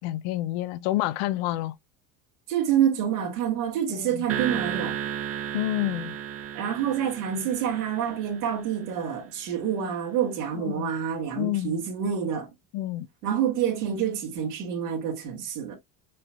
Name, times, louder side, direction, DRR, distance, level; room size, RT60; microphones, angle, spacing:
voice 1, 0.0-1.7 4.0-4.3 5.5-6.1 10.5-10.9 11.3-11.8 12.7-13.1, left 16 dB, 70° left, 0.7 m, -28 dB
voice 2, 2.5-5.0 6.6-12.5 13.2-15.8, right 9 dB, 80° right, 1.8 m, -27 dB
sound 1, 4.3-8.8, right 9 dB, 30° right, 0.6 m, -34 dB
5.4 x 4.0 x 2.3 m
hypercardioid pair, 80°, 45 cm